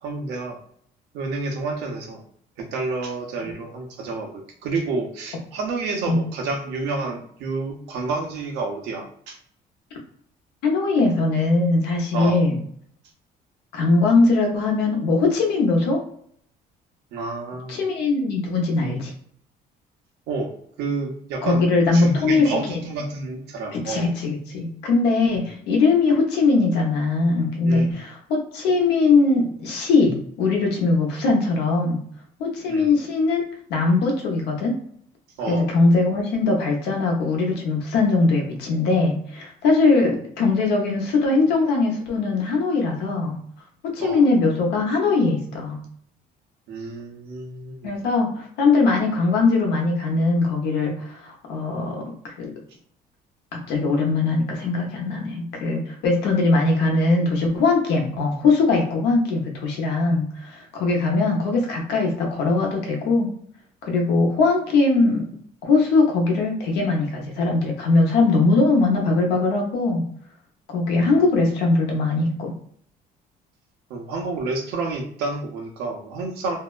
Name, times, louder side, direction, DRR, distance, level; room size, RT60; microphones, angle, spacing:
voice 1, 0.0-0.6 1.1-2.2 2.6-9.4 12.1-12.4 17.1-17.8 20.3-20.5 20.8-21.6 21.9-24.1 27.6-28.0 32.7-32.9 35.4-35.7 44.0-44.2 46.7-47.9 60.1-60.2 70.9-71.2 73.9-76.6, right 3 dB, 85° right, 2 dB, 0.7 m, -29 dB
voice 2, 10.6-12.6 13.7-16.0 17.7-19.1 21.4-22.8 23.7-32.0 32.4-33.4 33.7-34.8 35.5-43.4 43.8-45.8 47.8-52.5 53.7-63.3 63.8-65.2 65.6-70.0 70.7-72.5, left 3 dB, 85° left, 1 dB, 0.8 m, -21 dB
2.7 x 2.1 x 2.3 m, 0.63 s
cardioid pair, 110°, 17 cm